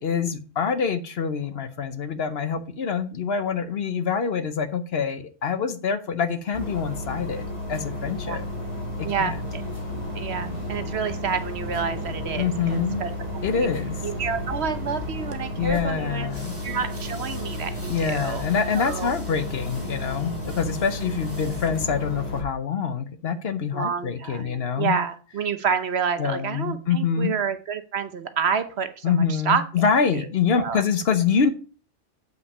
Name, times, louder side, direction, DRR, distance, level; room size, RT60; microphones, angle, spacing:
voice 1, 0.0-8.4 9.0-9.4 12.4-13.0 13.4-14.0 15.6-16.8 17.9-25.0 26.2-27.4 29.0-31.5, left 6 dB, 60° left, 11 dB, 1.0 m, -25 dB
sound 1, 6.5-22.4, left 1 dB, 25° left, 2.9 m, -33 dB
sound 2, 8.3-22.1, right 3 dB, 30° right, 0.8 m, -42 dB
voice 2, 9.0-9.6 10.1-13.1 13.5-13.7 14.0-16.3 16.6-18.5 18.8-19.1 23.7-29.6 30.1-30.3 30.5-30.8, right 6 dB, 60° right, 10 dB, 1.0 m, -29 dB
sound 3, 16.3-21.7, right 1 dB, 10° right, 2.0 m, -47 dB
8.0 x 5.6 x 5.3 m, 0.37 s
omnidirectional pair, 1.3 m